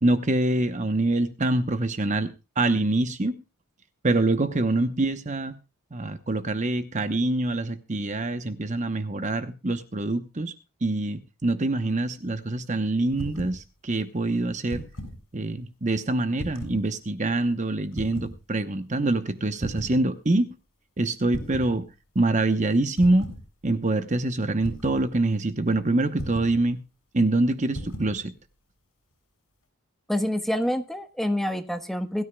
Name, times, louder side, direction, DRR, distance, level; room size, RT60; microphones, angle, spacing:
voice 1, 0.0-3.4 4.0-5.6 5.9-10.5 10.8-14.9 15.3-20.5 21.0-23.3 23.6-26.8 27.1-28.3, right 2 dB, 35° right, 0.9 m, -25 dB
sound 1, 13.1-13.6 14.5-15.2 16.4-16.8 17.9-18.4 19.6-20.0 21.3-21.8 23.0-23.4 24.6-25.1 26.2-26.6 27.7-28.2, equal, 60° left, 6.6 m, -36 dB
voice 2, 30.1-32.2, left 1 dB, ahead, 1.2 m, -27 dB
22.0 x 13.0 x 2.3 m
head